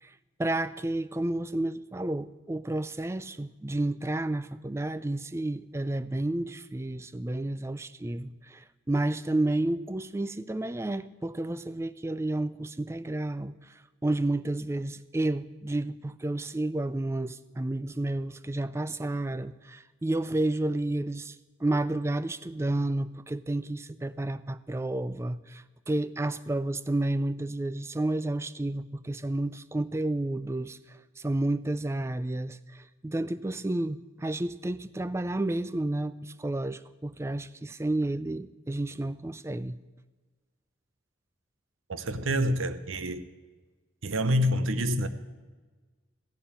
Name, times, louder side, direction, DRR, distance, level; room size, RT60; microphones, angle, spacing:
voice 1, 0.0-39.8, right 2 dB, 15° right, 0.3 m, -31 dB
voice 2, 41.9-43.2 44.0-45.1, equal, 90° right, 0.8 m, -27 dB
14.5 x 7.0 x 8.9 m
head